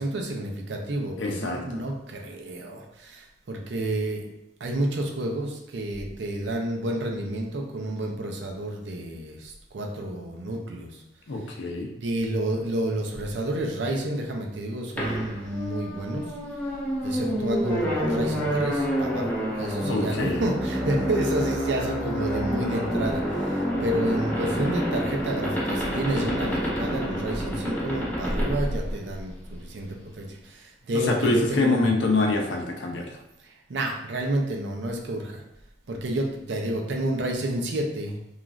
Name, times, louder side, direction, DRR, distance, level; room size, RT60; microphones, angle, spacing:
voice 1, 0.0-4.3 4.6-11.0 12.0-16.3 17.0-31.9 33.4-35.4 35.9-38.2, right 1 dB, 70° right, 1 dB, 0.5 m, -30 dB
voice 2, 1.2-1.8 11.3-11.9 19.8-20.5 30.9-33.2, left 2 dB, 80° left, 2 dB, 0.5 m, -25 dB
sound 1, 15.0-29.5, equal, 10° left, 0.5 m, -28 dB
3.0 x 2.4 x 2.4 m, 0.89 s
head